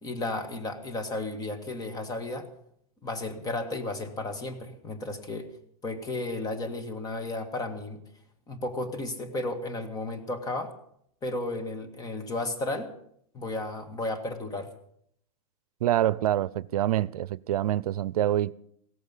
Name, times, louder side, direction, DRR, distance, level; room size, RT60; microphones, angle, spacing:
voice 1, 0.0-2.5 3.0-5.5 5.8-8.0 8.5-10.7 11.2-12.9 13.3-14.7, left 2 dB, 20° left, 2.1 m, -33 dB
voice 2, 15.8-18.5, right 12 dB, 90° right, 0.5 m, -26 dB
17.0 x 15.0 x 5.6 m
supercardioid pair, 140°, 19 cm